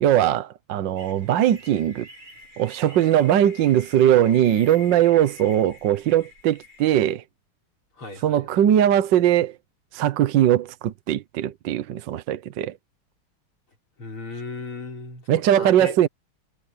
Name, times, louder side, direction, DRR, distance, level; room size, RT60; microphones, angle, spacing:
voice 1, 0.0-2.1 2.6-7.2 8.2-9.5 9.9-12.7 15.3-16.1, right 11 dB, 65° right, 1.4 m, -20 dB
sound 1, 1.0-7.1, left 3 dB, 85° right, 8.2 m, -47 dB
voice 2, 8.0-8.6 14.0-16.0, left 3 dB, 80° left, 6.7 m, -36 dB
omnidirectional pair, 2.3 m